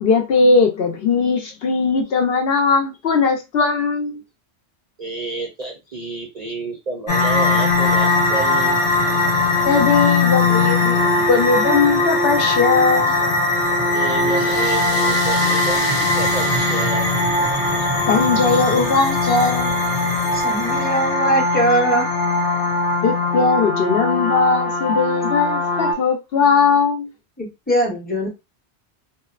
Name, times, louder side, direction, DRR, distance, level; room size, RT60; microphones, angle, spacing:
voice 1, 0.0-4.2 9.6-13.2 18.1-19.8 23.0-27.1, left 4 dB, 65° left, 0.8 m, -19 dB
voice 2, 5.0-8.8 13.1-13.2 13.9-17.2 17.7-18.0, right 4 dB, 50° right, 0.5 m, -30 dB
sound 1, 7.1-25.9, left 2 dB, 85° left, 1.1 m, -19 dB
voice 3, 20.3-22.1 27.4-28.3, right 1 dB, 10° left, 0.7 m, -21 dB
2.8 x 2.0 x 2.4 m
omnidirectional pair, 1.1 m